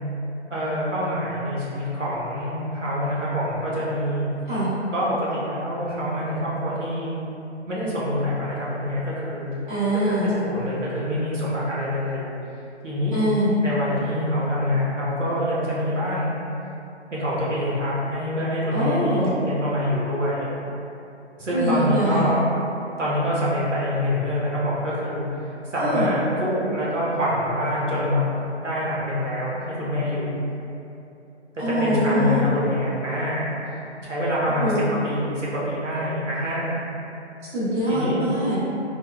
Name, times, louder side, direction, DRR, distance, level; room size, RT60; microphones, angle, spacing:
voice 1, 0.5-4.3 4.9-7.1 7.7-9.5 10.2-12.3 12.8-13.2 13.6-16.3 17.1-20.5 21.4-22.4 23.0-25.2 25.7-28.2 28.6-30.4 31.5-33.5 34.0-34.7 35.0-36.8 37.9-38.2, equal, 90° right, -7 dB, 1.0 m, -25 dB
voice 2, 9.7-10.3 13.1-13.5 18.7-19.3 21.5-22.3 25.8-26.1 31.6-32.4 34.6-34.8 37.5-38.6, equal, 45° right, -13 dB, 1.4 m, -23 dB
3.3 x 2.2 x 2.3 m, 2.8 s
figure-of-eight pair, 140°, 36 cm